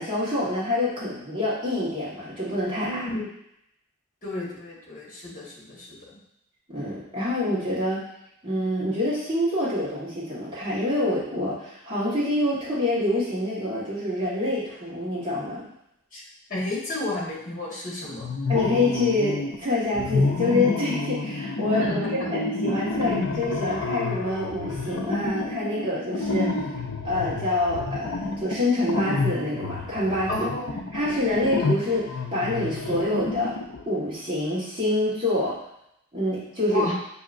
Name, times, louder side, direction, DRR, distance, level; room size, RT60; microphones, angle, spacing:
voice 1, 0.0-3.0 6.7-8.0 8.4-15.7 18.5-26.5 27.0-30.3 30.9-33.5 33.9-35.6 36.1-36.9, left 1 dB, 25° right, -9 dB, 1.4 m, -26 dB
voice 2, 2.8-3.3 4.2-6.0 16.1-16.2 16.5-18.3 21.8-22.3 30.3-30.8 36.7-36.9, left 2 dB, 40° left, -5 dB, 1.5 m, -31 dB
sound 1, 18.2-19.6 19.9-33.8, left 3 dB, 75° left, 0.5 m, -29 dB
6.0 x 2.8 x 2.5 m, 0.79 s
head